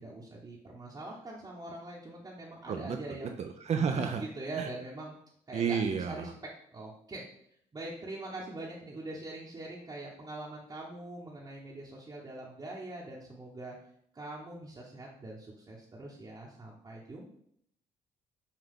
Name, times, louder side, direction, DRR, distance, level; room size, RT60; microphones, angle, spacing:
voice 1, 0.0-3.4 3.8-5.1 5.5-6.3 6.7-7.2 7.7-13.8 14.1-17.2, right 2 dB, 30° right, -4 dB, 0.9 m, -43 dB
voice 2, 3.4-4.2 4.5-4.7 5.5-6.3, right 6 dB, 50° right, 5 dB, 0.4 m, -31 dB
5.6 x 2.3 x 3.6 m, 0.68 s
supercardioid pair, 65°, 15 cm